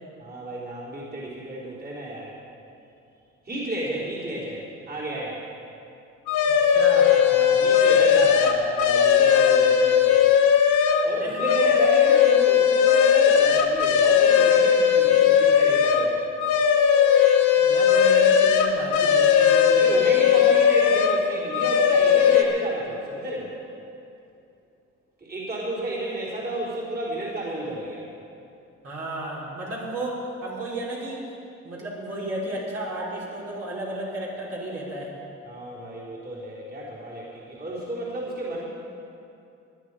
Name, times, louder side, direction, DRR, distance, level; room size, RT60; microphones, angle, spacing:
voice 1, 0.2-2.3 3.4-5.5 7.3-10.3 11.0-16.3 19.7-23.5 25.2-28.1 35.4-38.7, right 1 dB, 30° right, -7 dB, 4.1 m, -32 dB
sound 1, 6.3-11.1 11.4-16.1 16.4-21.2 21.5-22.4, left 8 dB, 80° left, 1.2 m, -18 dB
voice 2, 6.5-7.2 11.1-11.7 17.6-20.0 28.8-31.2 31.6-35.1, right 1 dB, 50° right, -6 dB, 4.3 m, -33 dB
19.5 x 11.0 x 5.0 m, 2.6 s
cardioid pair, 90°, 30 cm